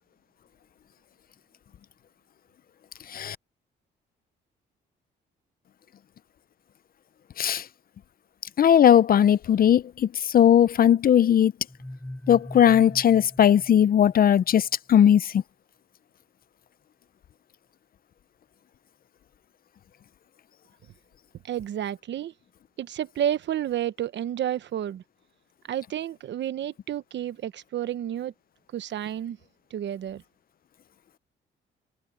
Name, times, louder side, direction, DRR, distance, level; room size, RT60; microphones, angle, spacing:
voice 1, 8.6-11.5 12.3-15.4, left 9 dB, 50° left, 0.6 m, -18 dB
sound 1, 11.7-14.5, left 1 dB, 5° left, 3.5 m, -41 dB
voice 2, 21.4-22.3 22.8-25.0 25.7-28.3 28.7-29.4 29.7-30.2, right 11 dB, 65° right, 1.0 m, -30 dB
cardioid pair, 90°, 20 cm